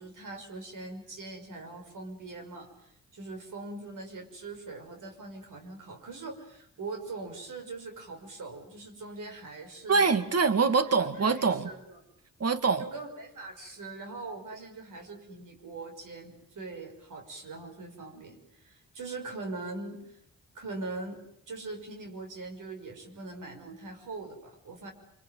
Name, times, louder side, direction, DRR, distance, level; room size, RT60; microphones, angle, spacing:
voice 1, 0.0-10.1 11.2-12.0 12.8-20.2 20.5-21.2 21.5-24.9, right 3 dB, 70° right, 4 dB, 5.8 m, -42 dB
voice 2, 9.9-11.7 12.4-12.9, right 5 dB, 50° right, 11 dB, 2.3 m, -24 dB
26.0 x 24.0 x 9.3 m, 0.73 s
cardioid pair, 70°, 32 cm